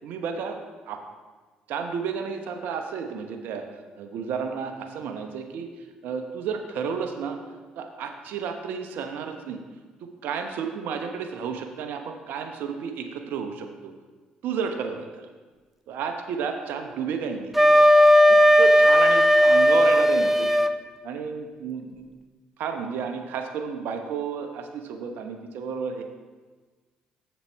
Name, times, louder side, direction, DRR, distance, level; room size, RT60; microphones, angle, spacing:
voice 1, 0.0-0.6 0.9-1.0 1.7-3.6 4.0-7.4 7.8-9.6 10.2-13.9 14.4-15.3 15.9-17.9 18.3-20.5 21.0-22.1 22.6-26.0, right 6 dB, 70° right, 5 dB, 0.9 m, -32 dB
Wind instrument woodwind instrument, 17.5-20.7, equal, 5° right, 0.5 m, -16 dB
7.3 x 7.2 x 4.5 m, 1.4 s
hypercardioid pair, 60°, 3 cm